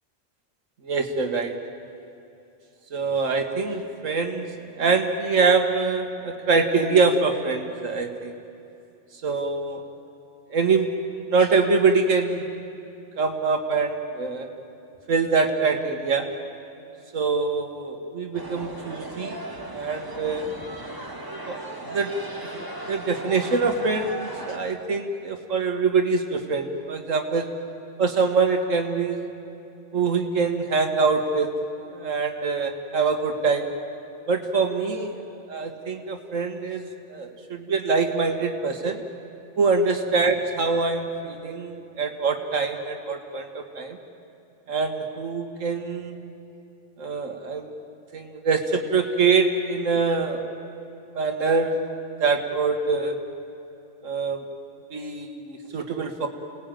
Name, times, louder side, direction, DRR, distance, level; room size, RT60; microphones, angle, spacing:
voice 1, 0.8-1.6 2.9-8.3 9.2-9.8 10.5-10.9 11.3-12.5 13.2-14.5 15.1-16.3 17.1-19.4 19.7-20.5 21.5-21.6 21.9-22.1 22.5-27.5 28.0-29.2 29.9-31.5 31.9-33.7 34.3-35.2 35.5-39.0 39.6-44.0 44.7-46.2 47.0-47.7 48.1-50.4 51.2-51.8 52.2-53.2 54.0-54.4 54.9-56.3, right 4 dB, 85° right, 5 dB, 1.8 m, -24 dB
sound 1, 18.3-24.6, right 1 dB, 15° right, 2.0 m, -36 dB
29.0 x 18.5 x 9.1 m, 2.8 s
omnidirectional pair, 1.3 m